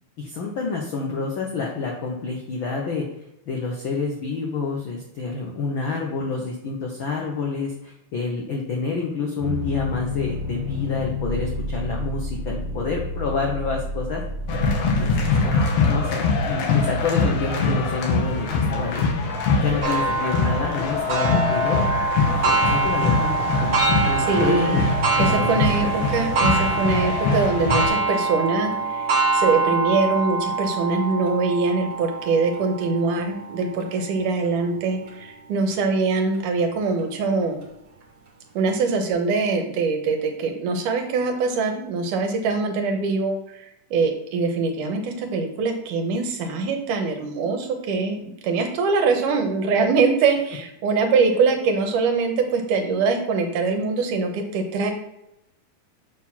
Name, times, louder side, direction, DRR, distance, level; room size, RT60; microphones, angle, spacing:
voice 1, 0.2-3.0 3.5-14.2 15.0-19.1 19.5-21.8 22.2-23.3 23.6-25.6 26.0-26.1, left 4 dB, 85° left, 0 dB, 1.1 m, -28 dB
sound 1, 9.4-16.6, left 2 dB, 25° right, 1.2 m, -30 dB
sound 2, 14.5-27.9, left 4 dB, 60° left, 1.9 m, -23 dB
Clock, 19.8-35.1 35.7-35.8 36.3-36.4 37.4-37.5, right 4 dB, 45° right, 1.8 m, -25 dB
voice 2, 24.3-24.8 25.2-29.0 29.3-37.6 38.6-43.4 43.9-54.9, right 4 dB, 80° right, 4 dB, 2.5 m, -23 dB
7.0 x 4.1 x 5.8 m, 0.85 s
omnidirectional pair, 3.7 m